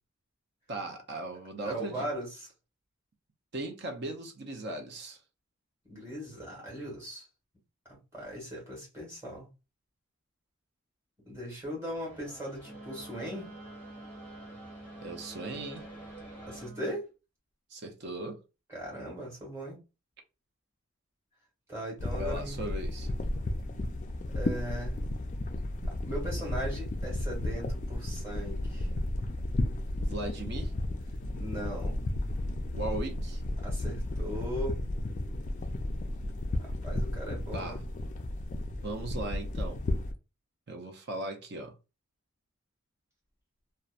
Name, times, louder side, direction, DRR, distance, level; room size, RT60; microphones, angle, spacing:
voice 1, 0.7-2.1 3.5-5.2 15.0-15.9 17.7-18.4 22.2-23.1 30.0-30.7 32.7-33.4 37.5-37.8 38.8-39.8 40.7-41.7, right 2 dB, 50° right, 0.6 m, -38 dB
voice 2, 1.6-2.5 5.8-7.3 7.9-9.5 11.2-13.5 16.4-17.0 18.7-19.8 21.7-22.6 24.3-25.0 25.9-28.9 31.3-32.0 33.6-34.8 36.5-37.8, right 1 dB, 15° right, 1.4 m, -39 dB
sound 1, 11.8-16.7, right 2 dB, 5° left, 0.8 m, -50 dB
Wind instrument woodwind instrument, 12.6-17.0, right 1 dB, 65° right, 1.1 m, -48 dB
sound 2, 22.0-40.1, left 1 dB, 35° left, 0.3 m, -33 dB
2.8 x 2.1 x 2.4 m
head